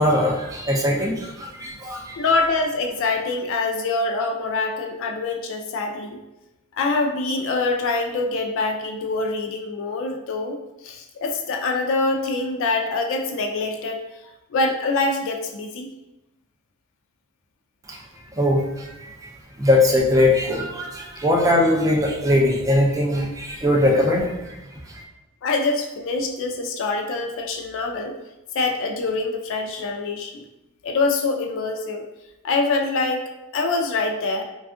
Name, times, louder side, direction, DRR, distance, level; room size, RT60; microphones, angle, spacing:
voice 1, 0.0-2.2 17.9-18.0 18.4-19.3 19.6-24.6 24.9-25.0, left 1 dB, 15° right, -1 dB, 0.4 m, -21 dB
voice 2, 2.2-6.2 6.8-10.6 10.8-14.0 14.5-15.9 25.4-28.1 28.5-30.4 30.8-32.0 32.4-34.4, left 3 dB, 60° left, 4 dB, 0.3 m, -24 dB
3.3 x 2.3 x 2.5 m, 0.96 s
head